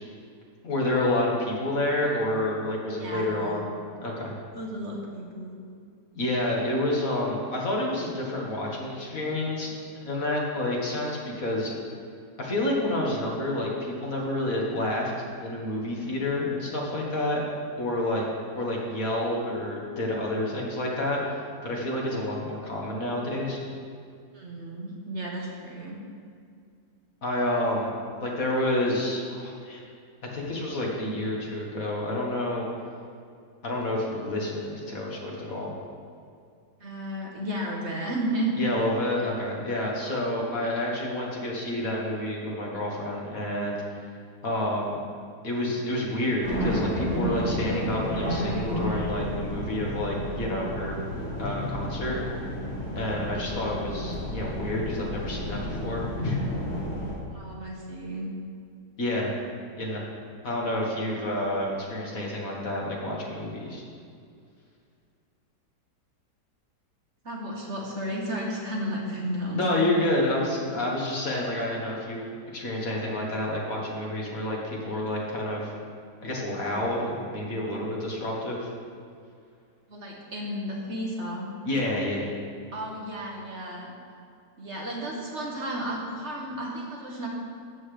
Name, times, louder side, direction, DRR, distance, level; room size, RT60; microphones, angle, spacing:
voice 1, 0.6-3.7 4.0-4.3 6.2-9.7 10.0-11.7 12.4-15.1 15.4-17.4 17.8-18.3 18.6-21.2 21.6-23.6 27.2-27.9 28.2-29.8 30.2-32.7 33.6-35.7 38.6-43.8 44.4-45.0 45.4-51.0 51.4-52.2 53.0-56.4 59.0-59.3 59.8-60.0 60.4-63.8 69.5-72.3 72.5-75.7 76.2-78.7 81.6-82.3, left 1 dB, 55° left, -3 dB, 2.0 m, -29 dB
voice 2, 3.0-3.6 4.5-5.6 24.3-26.0 36.8-38.6 57.3-58.3 67.2-69.9 79.9-81.5 82.7-83.9 84.6-87.3, right 1 dB, 45° right, -2 dB, 1.4 m, -33 dB
sound 1, 46.4-57.1, equal, 40° left, 3.1 m, -31 dB
12.5 x 8.3 x 3.3 m, 2.3 s
omnidirectional pair, 1.8 m